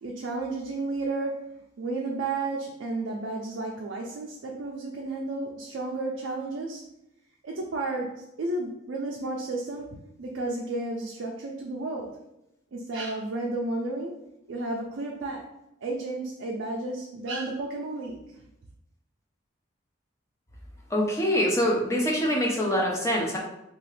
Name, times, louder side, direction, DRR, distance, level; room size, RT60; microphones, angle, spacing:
voice 1, 0.0-1.4 1.8-6.8 7.4-12.1 12.7-14.1 14.5-15.5 15.8-18.4, right 2 dB, 75° right, -1 dB, 0.4 m, -32 dB
voice 2, 20.9-23.4, equal, 15° left, -2 dB, 0.5 m, -24 dB
2.9 x 2.3 x 3.1 m, 0.86 s
head